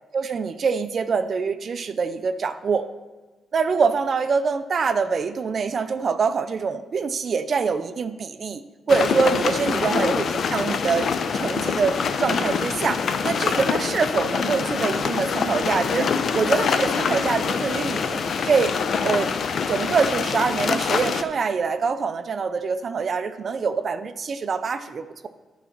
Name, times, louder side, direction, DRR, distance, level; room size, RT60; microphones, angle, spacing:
voice 1, 0.1-2.9 3.5-8.6 8.9-18.8 19.0-19.3 19.7-25.3, right 5 dB, 35° right, 11 dB, 0.4 m, -24 dB
sound 1, 8.9-21.2, left 6 dB, 45° left, 0.4 m, -25 dB
11.5 x 4.0 x 5.8 m, 1.3 s
cardioid pair, 165°, 0 cm